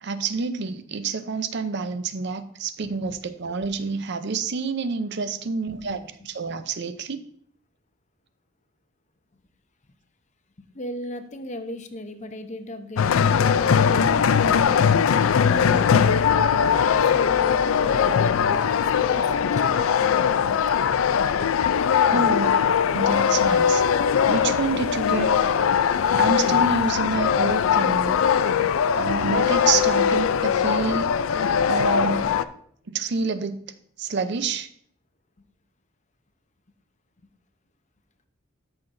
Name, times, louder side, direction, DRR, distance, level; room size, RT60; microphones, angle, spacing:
voice 1, 0.0-7.2 22.1-22.6 22.9-23.8 24.3-25.3 26.2-28.2 28.9-31.1 31.7-32.3 32.9-33.6 34.0-34.7, right 4 dB, 55° right, 12 dB, 0.6 m, -28 dB
voice 2, 2.8-3.2 5.8-6.2 10.6-14.8 15.4-20.6 21.7-21.8, left 1 dB, 35° left, 8 dB, 0.7 m, -37 dB
sound 1, 13.0-32.4, left 7 dB, 80° left, 0.4 m, -20 dB
13.0 x 5.8 x 2.6 m, 0.64 s
head